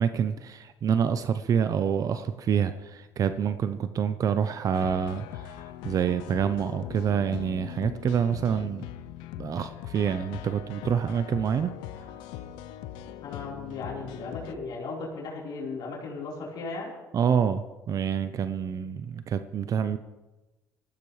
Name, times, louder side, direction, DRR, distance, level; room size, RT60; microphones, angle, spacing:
voice 1, 0.0-5.5 5.8-8.8 9.4-11.7 17.1-20.0, right 7 dB, 50° right, 11 dB, 0.7 m, -27 dB
sound 1, 4.7-14.5, left 11 dB, 80° left, 0.6 m, -41 dB
voice 2, 13.2-16.9, left 3 dB, 65° left, -4 dB, 4.3 m, -36 dB
19.0 x 14.5 x 3.3 m, 1.1 s
supercardioid pair, 75°, 8 cm